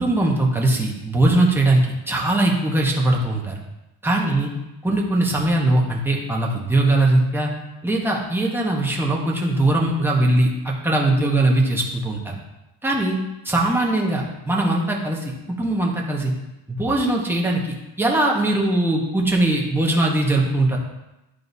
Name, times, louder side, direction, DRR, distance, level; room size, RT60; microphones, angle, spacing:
voice 1, 0.0-1.8 2.1-3.6 4.0-4.5 4.8-7.5 7.8-12.3 12.8-13.2 13.4-15.3 15.6-16.3 16.7-20.8, right 2 dB, 5° right, -2 dB, 1.0 m, -20 dB
11.0 x 3.8 x 2.7 m, 0.95 s
cardioid pair, 140°, 45 cm